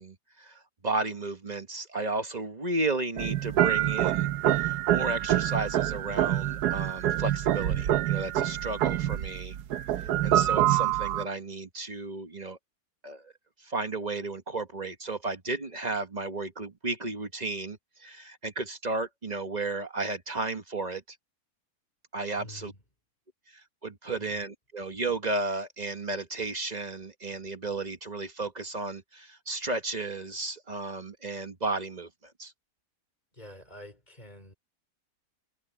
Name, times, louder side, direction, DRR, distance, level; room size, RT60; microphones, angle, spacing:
voice 1, 0.0-9.6 10.0-12.6 13.0-13.3 13.6-21.2 22.1-22.7 23.5-32.5, right 3 dB, 30° right, 1.2 m, -34 dB
sound 1, 3.2-11.3, right 12 dB, 85° right, 1.3 m, -26 dB
voice 2, 22.4-22.8 24.2-24.4 33.3-34.5, left 1 dB, 25° left, 5.3 m, -47 dB
omnidirectional pair, 1.7 m